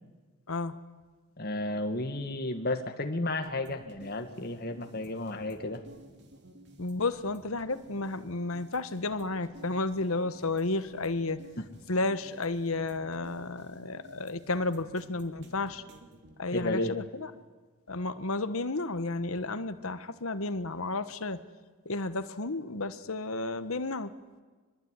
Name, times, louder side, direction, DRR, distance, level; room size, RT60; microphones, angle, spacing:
voice 1, 1.4-5.8 11.6-11.7 16.5-17.0, left 2 dB, 45° left, 5 dB, 1.8 m, -32 dB
sound 1, 3.4-16.3, right 1 dB, 50° right, 2.8 m, -54 dB
voice 2, 6.8-11.4 11.9-15.8 16.4-17.3 17.9-21.4 21.8-24.1, left 2 dB, 70° left, 11 dB, 1.4 m, -32 dB
24.5 x 22.0 x 9.9 m, 1.4 s
head